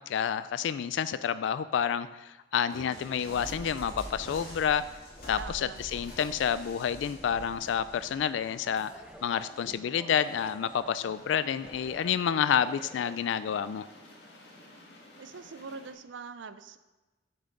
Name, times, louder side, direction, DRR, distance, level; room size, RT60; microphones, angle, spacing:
voice 1, 0.0-4.9 5.3-8.9 9.2-13.9, left 8 dB, 85° left, 14 dB, 0.3 m, -29 dB
sound 1, 2.7-9.7 10.1-10.8 11.6-11.9, equal, 50° left, 2.8 m, -46 dB
voice 2, 5.4-5.9 15.2-16.8, right 4 dB, 85° right, 12 dB, 0.5 m, -43 dB
sound 2, 7.0-13.2, equal, 5° right, 0.8 m, -51 dB
sound 3, 10.9-15.9, left 1 dB, 70° left, 1.9 m, -54 dB
9.7 x 6.9 x 3.8 m, 1.1 s
head